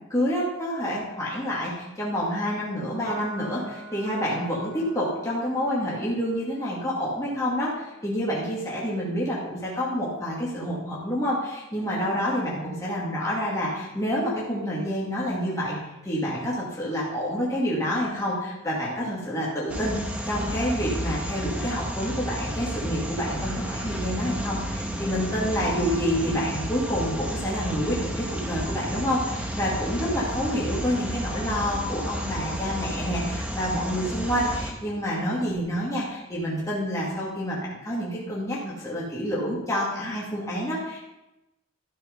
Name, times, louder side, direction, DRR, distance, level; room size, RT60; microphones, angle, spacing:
voice 1, 0.1-15.8 16.0-20.0 20.3-41.0, equal, 15° left, -7 dB, 2.5 m, -28 dB
Piano, 3.1-9.8, right 2 dB, 60° right, 3.2 m, -45 dB
sound 1, 19.7-34.7, equal, 5° right, 1.2 m, -32 dB
13.0 x 7.0 x 5.3 m, 0.96 s
head